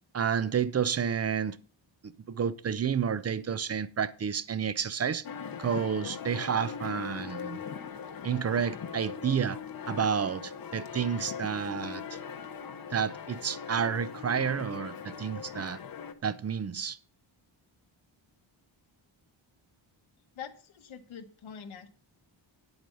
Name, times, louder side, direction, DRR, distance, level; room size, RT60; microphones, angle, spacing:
voice 1, 0.1-1.6 2.3-5.2 5.6-7.6 8.2-9.6 9.9-12.2 12.9-15.8 16.2-17.0, right 7 dB, 35° right, 0.5 m, -30 dB
sound 1, 5.2-16.1, left 7 dB, 50° left, 0.9 m, -40 dB
voice 2, 20.3-21.9, left 7 dB, 85° left, 1.5 m, -44 dB
10.5 x 8.0 x 5.3 m
wide cardioid pair, 180°, 46 cm